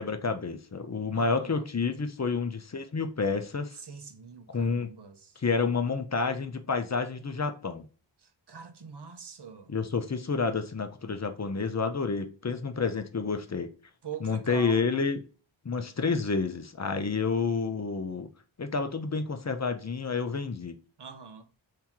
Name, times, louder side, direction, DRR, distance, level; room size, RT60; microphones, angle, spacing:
voice 1, 0.0-3.8 4.5-4.9 5.4-7.9 9.7-13.7 14.2-15.2 15.6-18.3 18.6-20.8, left 4 dB, 35° left, 0.6 m, -29 dB
voice 2, 1.1-1.7 3.8-5.4 8.2-9.7 14.0-14.8 21.0-21.5, right 6 dB, 55° right, 0.8 m, -44 dB
3.5 x 2.8 x 2.9 m
wide cardioid pair, 50°, 49 cm